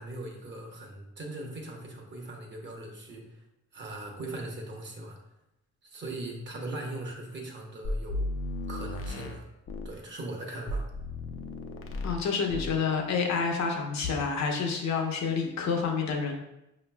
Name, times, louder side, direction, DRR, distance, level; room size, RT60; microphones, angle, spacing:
voice 1, 0.0-3.4 3.7-5.2 5.8-8.3 8.7-9.5 9.8-10.9, right 2 dB, 40° right, 0 dB, 1.0 m, -40 dB
sound 1, 7.8-10.0 10.7-12.2 12.5-12.8, left 1 dB, 50° left, 0.5 m, -34 dB
voice 2, 12.0-16.3, left 5 dB, 65° left, 2 dB, 0.8 m, -28 dB
5.1 x 3.0 x 2.2 m, 0.87 s
cardioid pair, 90°, 30 cm